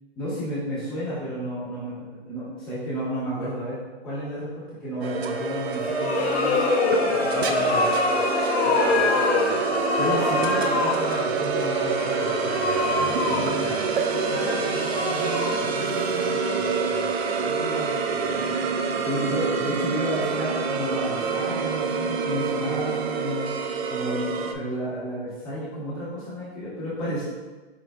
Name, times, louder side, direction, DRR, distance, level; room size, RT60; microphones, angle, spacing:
voice 1, 0.1-6.6 7.1-7.9 10.0-11.7 13.2-13.7 19.0-23.6 23.9-27.2, equal, ahead, -15 dB, 1.4 m, -31 dB
sound 1, 5.0-24.5, right 5 dB, 70° right, 0.5 m, -27 dB
sound 2, 5.7-16.7, left 3 dB, 75° left, 0.9 m, -26 dB
voice 2, 7.6-8.2 8.6-9.8 10.2-10.5 11.5-13.9 14.3-18.5, left 2 dB, 30° left, -5 dB, 0.4 m, -40 dB
sound 3, 20.5-24.4, right 3 dB, 85° right, 1.3 m, -40 dB
4.9 x 3.7 x 2.3 m, 1.2 s
hypercardioid pair, 165°, 33 cm